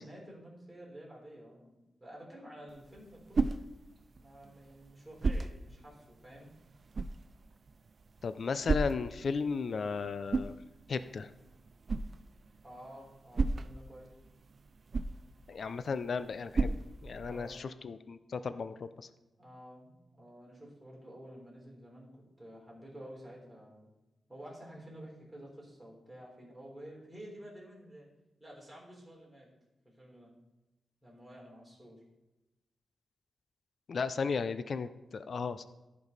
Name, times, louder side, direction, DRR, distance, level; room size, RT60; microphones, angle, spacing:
voice 1, 0.0-3.6 4.2-6.5 12.6-14.1 17.2-17.6 19.4-23.9 24.3-28.1 28.4-29.5 29.8-30.3 31.0-32.0, right 1 dB, 5° right, -4 dB, 3.7 m, -51 dB
sound 1, 2.7-17.6, right 3 dB, 45° right, 0.4 m, -37 dB
voice 2, 8.2-10.6 10.9-11.3 15.5-16.8 17.0-19.1 33.9-35.9, left 5 dB, 55° left, 12 dB, 0.5 m, -35 dB
15.0 x 5.5 x 4.0 m, 1.0 s
wide cardioid pair, 115°, 0 cm